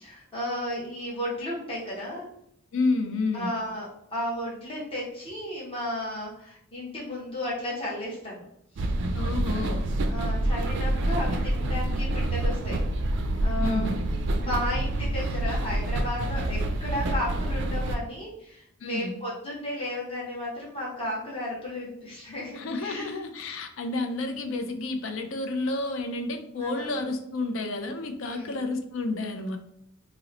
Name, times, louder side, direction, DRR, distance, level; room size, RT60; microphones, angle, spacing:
voice 1, 0.0-2.3 3.3-8.5 8.8-8.9 10.1-12.8 13.4-13.8 14.4-23.2 26.6-27.0 28.2-28.7, left 1 dB, 25° left, -6 dB, 0.9 m, -34 dB
voice 2, 2.7-3.5 9.1-9.9 13.6-14.1 18.8-19.2 22.5-29.6, left 2 dB, 60° left, 6 dB, 0.4 m, -30 dB
sound 1, 8.8-18.0, right 1 dB, 55° right, 0.3 m, -27 dB
2.9 x 2.0 x 3.8 m, 0.74 s
head